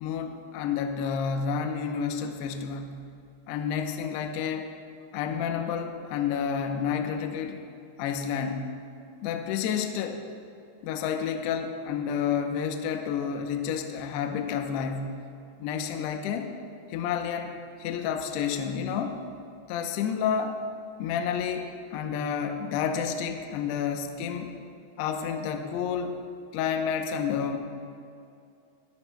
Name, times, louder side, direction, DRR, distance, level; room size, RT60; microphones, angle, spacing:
voice 1, 0.0-3.0 3.5-4.7 5.1-7.6 8.0-8.7 9.2-10.2 10.8-15.2 15.6-16.5 16.9-19.2 19.7-20.6 21.0-24.6 25.0-26.2 26.5-27.6, left 7 dB, 80° left, 4 dB, 2.5 m, -30 dB
23.0 x 11.0 x 2.2 m, 2.5 s
omnidirectional pair, 5.6 m